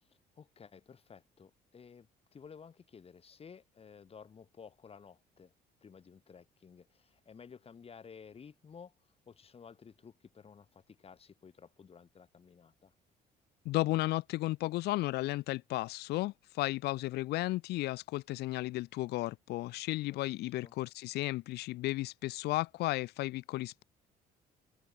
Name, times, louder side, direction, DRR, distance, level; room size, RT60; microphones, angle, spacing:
voice 1, 0.0-5.5 5.8-8.9 9.3-12.9 20.1-20.7, left 6 dB, 35° left, 3.6 m, -54 dB
voice 2, 13.6-23.8, left 18 dB, 75° left, 0.6 m, -34 dB
open air
cardioid pair, 110°, 17 cm